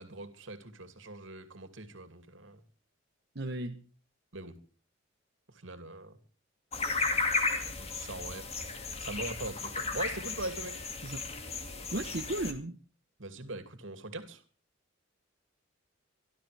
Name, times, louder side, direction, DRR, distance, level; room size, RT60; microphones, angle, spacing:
voice 1, 0.0-2.6 4.3-4.5 5.6-6.1 7.7-8.4 9.0-10.8 13.2-14.4, right 2 dB, 75° right, 2.7 m, -41 dB
voice 2, 3.3-3.8 11.0-11.2 11.9-12.7, right 2 dB, 55° right, 1.2 m, -35 dB
sound 1, 6.7-12.5, left 4 dB, 30° left, 2.3 m, -34 dB
26.0 x 13.0 x 3.4 m
head